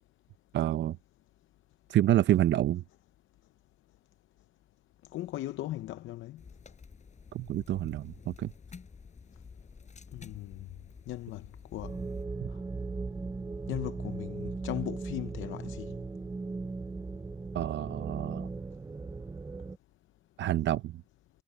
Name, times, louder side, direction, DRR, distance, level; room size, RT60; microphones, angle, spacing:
voice 1, 0.5-1.0 1.9-2.8 7.3-8.5 17.5-18.5 20.4-21.0, right 13 dB, 65° right, 0.6 m, -28 dB
voice 2, 5.1-6.4 10.1-10.7 11.1-11.5 11.7-12.0 13.7-15.9, left 15 dB, 80° left, 0.7 m, -38 dB
sound 1, 6.4-12.2, left 5 dB, 35° left, 4.6 m, -51 dB
sound 2, 11.8-19.8, right 3 dB, 15° right, 0.4 m, -38 dB
cardioid pair, 90°, 20 cm